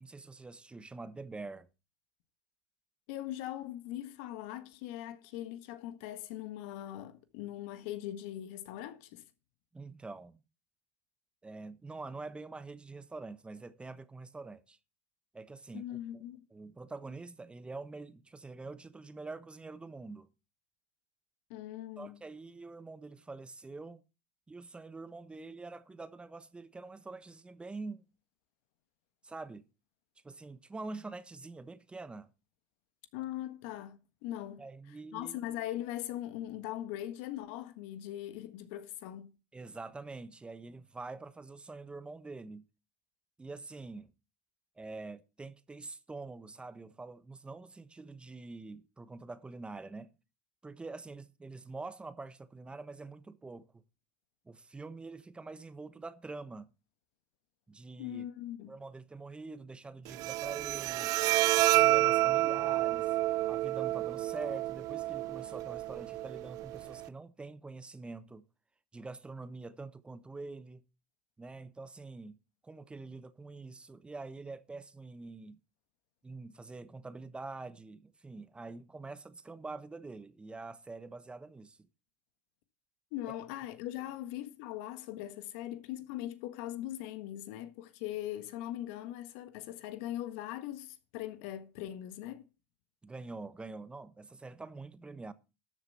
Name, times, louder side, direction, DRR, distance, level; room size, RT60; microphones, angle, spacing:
voice 1, 0.0-1.7 9.7-10.4 11.4-14.8 15.3-16.2 16.5-20.3 22.0-24.0 24.5-28.0 29.2-29.6 30.2-32.3 34.6-35.4 39.5-42.6 43.4-44.1 44.8-50.1 50.6-53.8 54.4-56.7 57.7-58.2 58.7-61.2 61.6-63.2 63.5-68.4 68.9-70.8 71.4-72.4 72.6-75.6 76.2-81.9 83.3-83.4 93.0-95.3, right 3 dB, 15° right, 1.1 m, -45 dB
voice 2, 3.1-9.2 15.7-16.4 21.5-22.2 33.1-34.6 35.1-39.3 58.0-58.7 83.1-92.5, left 13 dB, 65° left, 1.5 m, -40 dB
Bowed string instrument, 60.1-67.1, right 16 dB, 55° right, 0.6 m, -29 dB
13.0 x 7.4 x 5.7 m
hypercardioid pair, 90°, 7 cm